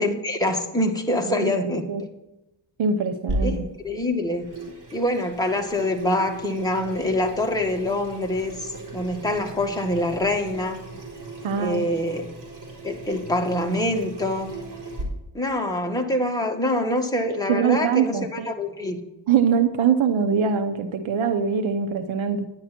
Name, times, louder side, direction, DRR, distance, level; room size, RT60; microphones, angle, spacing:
voice 1, 0.0-1.9 3.4-4.5 4.9-10.8 11.6-12.3 12.8-14.6 15.3-19.0, left 1 dB, 10° left, 1 dB, 1.8 m, -25 dB
voice 2, 1.3-2.0 2.8-3.7 11.4-11.8 17.5-18.5 19.3-22.5, right 6 dB, 85° right, 8 dB, 0.9 m, -23 dB
Water tap faucet / Sink (filling or washing), 3.3-15.0, right 2 dB, 60° right, 3.6 m, -36 dB
10.5 x 10.0 x 4.4 m, 0.96 s
cardioid pair, 95°, 45 cm